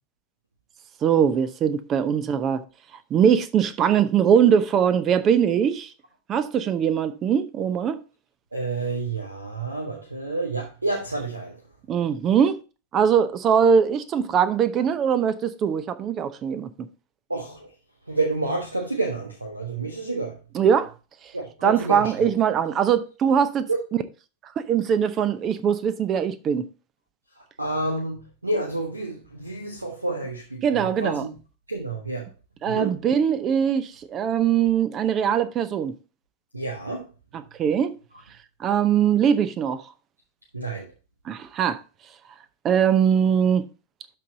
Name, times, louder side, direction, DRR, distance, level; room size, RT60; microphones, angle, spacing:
voice 1, 1.0-2.6 3.1-5.9 6.3-8.0 11.9-12.6 12.9-16.7 20.5-20.9 21.6-23.7 24.6-26.7 30.6-31.3 32.6-35.9 37.3-37.9 38.6-39.8 41.3-41.8 42.6-43.6, right 8 dB, 30° right, 0.7 m, -21 dB
voice 2, 8.5-11.6 17.3-17.7 18.1-20.4 21.3-22.1 23.7-23.8 27.6-31.3 31.7-32.3 32.6-32.9 36.5-37.0 40.5-40.8, right 2 dB, 80° right, 1.4 m, -29 dB
12.0 x 4.1 x 3.9 m
figure-of-eight pair, 90°, 0 cm